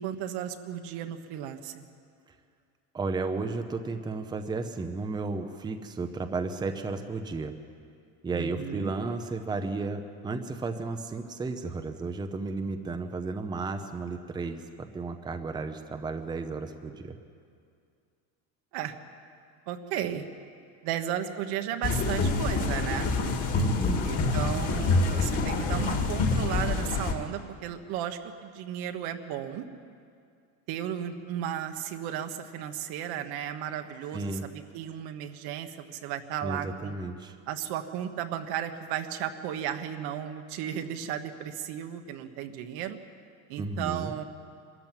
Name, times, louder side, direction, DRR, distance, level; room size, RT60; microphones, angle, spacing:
voice 1, 0.0-1.8 8.3-8.9 18.7-19.0 19.7-20.3 20.8-23.2 24.0-29.7 30.7-36.9 37.5-43.0 43.5-44.2, right 10 dB, 70° right, 7 dB, 1.4 m, -34 dB
voice 2, 2.9-7.5 8.2-17.2 23.5-24.7 34.1-34.4 36.4-37.3 43.6-44.1, right 3 dB, 10° right, 6 dB, 0.7 m, -33 dB
sound 1, 21.8-27.1, left 3 dB, 35° left, 2.2 m, -26 dB
24.0 x 14.0 x 9.0 m, 2.4 s
cardioid pair, 165°, 39 cm